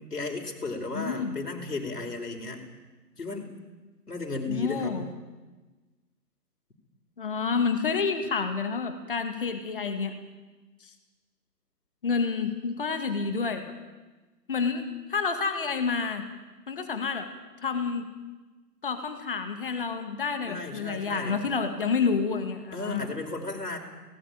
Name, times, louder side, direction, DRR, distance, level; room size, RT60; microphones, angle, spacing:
voice 1, 0.0-2.6 3.2-3.5 4.1-5.0 20.4-21.4 22.7-23.8, left 3 dB, 65° left, 1 dB, 5.3 m, -34 dB
voice 2, 0.9-1.4 4.5-5.1 7.2-10.2 10.8-10.9 12.0-13.7 14.5-16.2 16.7-17.3 17.6-18.1 18.8-23.1, left 5 dB, 30° left, 7 dB, 2.2 m, -29 dB
25.0 x 19.0 x 8.9 m, 1.2 s
figure-of-eight pair, 145°, 49 cm